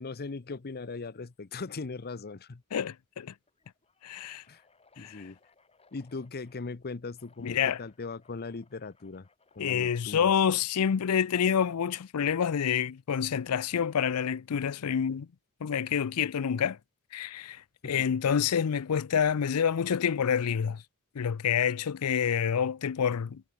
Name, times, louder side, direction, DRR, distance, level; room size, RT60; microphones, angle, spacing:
voice 1, 0.0-2.6 4.5-4.6 5.0-5.4 5.9-9.3 9.5-10.3 17.8-18.2, left 4 dB, 45° left, 0.7 m, -39 dB
sound 1, 2.2-2.5 2.8-2.9 3.4-6.7 7.1-10.3 11.7-12.1 13.2-14.2, left 4 dB, 30° left, 4.2 m, -67 dB
voice 2, 2.7-3.3 4.0-4.4 5.0-5.2 7.4-7.8 9.6-15.3 15.6-16.8 17.1-20.8 21.1-23.4, left 7 dB, 80° left, 0.5 m, -28 dB
head